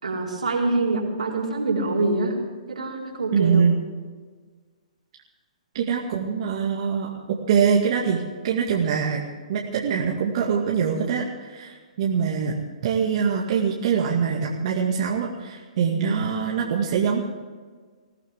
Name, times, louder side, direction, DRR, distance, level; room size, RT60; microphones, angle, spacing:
voice 1, 0.0-2.4 2.7-3.7, right 2 dB, 80° right, -2 dB, 4.4 m, -25 dB
voice 2, 3.3-3.8 5.7-9.2 9.5-12.6 12.8-17.2, right 6 dB, 55° right, -2 dB, 2.2 m, -23 dB
21.5 x 15.5 x 3.7 m, 1.5 s
hypercardioid pair, 130°, 4 cm